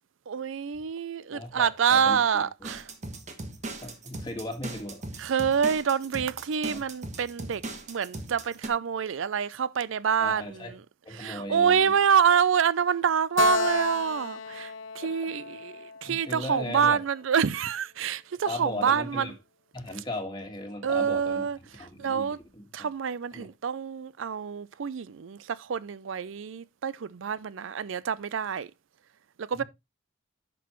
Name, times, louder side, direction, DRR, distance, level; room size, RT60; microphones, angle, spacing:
voice 1, 0.3-2.9 5.2-10.8 11.1-19.3 20.8-22.4 22.7-28.7 29.4-29.6, right 7 dB, 70° right, 0.4 m, -27 dB
voice 2, 1.3-2.7 3.8-5.0 6.7-6.8 10.2-10.7 11.0-11.9 15.0-15.1 16.0-17.0 18.5-19.3 19.7-21.5 21.8-22.6 23.3-23.5 29.6-29.7, left 1 dB, 20° left, 1.7 m, -37 dB
sound 1, 2.6-8.7, right 2 dB, 35° right, 1.2 m, -39 dB
Keyboard (musical), 13.4-16.8, left 4 dB, 65° left, 0.6 m, -32 dB
10.5 x 6.1 x 3.0 m
head